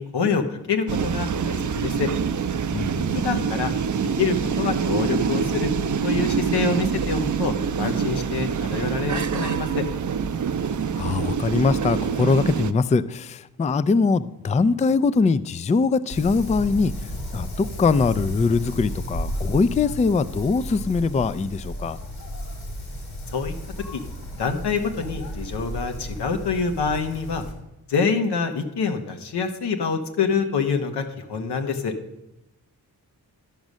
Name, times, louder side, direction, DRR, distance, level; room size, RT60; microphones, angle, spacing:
voice 1, 0.0-2.1 3.1-3.7 4.2-5.7 6.0-9.9 23.3-23.5 23.9-24.0 24.4-27.4 27.9-31.9, left 5 dB, 85° left, 6 dB, 1.1 m, -26 dB
sound 1, 0.9-12.7, right 6 dB, 50° right, 0.6 m, -25 dB
voice 2, 2.7-3.3 10.9-17.1 17.3-22.0, left 4 dB, 20° left, 16 dB, 0.3 m, -22 dB
Wind, 16.1-27.5, equal, 60° left, 2.4 m, -33 dB
12.0 x 5.3 x 6.2 m, 0.92 s
cardioid pair, 60°, 39 cm